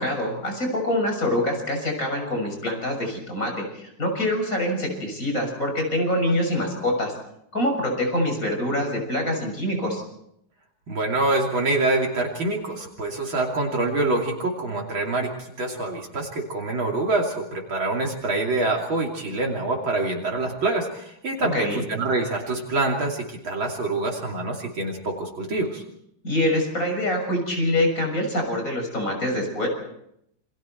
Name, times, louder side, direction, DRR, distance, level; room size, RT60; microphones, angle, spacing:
voice 1, 0.0-7.1 7.5-10.0 21.5-21.8 26.2-29.7, left 1 dB, 35° left, 3 dB, 7.0 m, -25 dB
voice 2, 10.9-15.3 15.6-25.8, right 2 dB, 65° right, 0 dB, 3.6 m, -25 dB
29.0 x 25.5 x 4.6 m, 0.76 s
omnidirectional pair, 2.4 m